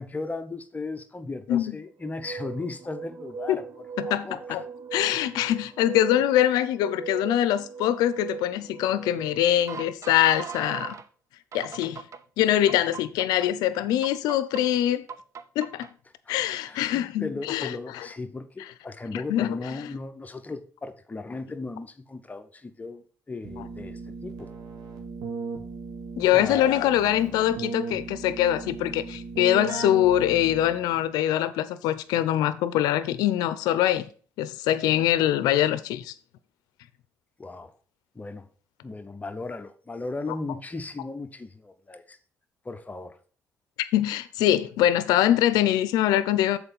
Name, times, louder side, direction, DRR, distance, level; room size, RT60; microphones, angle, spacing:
voice 1, 0.0-4.6 16.3-16.4 16.6-24.5 26.3-26.7 37.4-37.7 38.1-38.5 38.8-42.2 42.6-43.2, left 3 dB, 25° left, 0.9 m, -36 dB
sound 1, 2.0-11.1 11.5-12.2 12.7-13.5 14.0-14.6 15.1-15.9, right 6 dB, 50° right, 0.6 m, -39 dB
voice 2, 4.0-4.6 4.9-11.0 11.5-12.0 12.4-15.1 15.6-15.9 16.3-18.1 19.1-19.5 26.2-34.1 34.4-36.1 43.9-46.6, left 12 dB, 90° left, 0.5 m, -23 dB
Keyboard (musical), 23.4-31.0, right 4 dB, 85° right, 1.6 m, -37 dB
6.7 x 4.5 x 5.4 m
cardioid pair, 80°, 7 cm